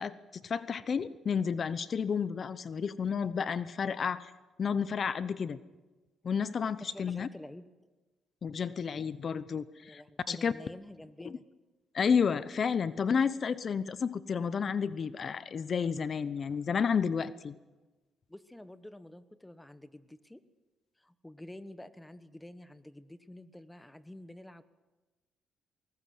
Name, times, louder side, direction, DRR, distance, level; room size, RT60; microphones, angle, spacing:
voice 1, 0.0-4.3 4.6-5.6 6.2-7.3 8.4-10.0 10.3-10.5 11.2-11.4 11.9-17.5, left 6 dB, 45° left, 15 dB, 0.8 m, -31 dB
voice 2, 6.8-7.7 9.8-11.4 18.3-20.4 21.0-24.6, left 1 dB, 10° left, 13 dB, 1.2 m, -49 dB
21.0 x 19.0 x 7.8 m, 1.2 s
cardioid pair, 90°, 0 cm